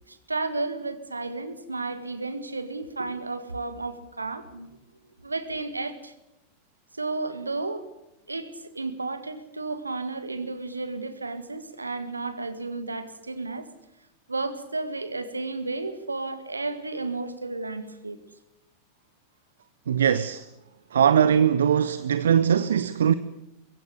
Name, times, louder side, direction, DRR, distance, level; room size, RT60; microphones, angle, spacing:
voice 1, 0.1-4.7 5.2-6.1 6.9-7.9 8.3-13.7 14.3-18.2, right 3 dB, 80° right, 1.9 m, -32 dB
voice 2, 19.9-20.5 20.9-23.1, right 8 dB, 65° right, 0.8 m, -21 dB
23.0 x 16.0 x 9.5 m
figure-of-eight pair, 90°, 0 cm